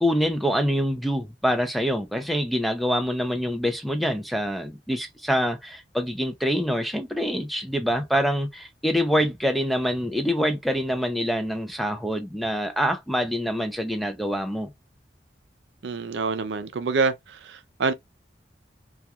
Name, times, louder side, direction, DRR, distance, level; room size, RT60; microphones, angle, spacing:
voice 1, 0.0-14.7, equal, ahead, 0.4 m, -25 dB
voice 2, 15.8-17.9, right 4 dB, 85° right, 0.4 m, -26 dB
2.3 x 2.3 x 2.8 m
head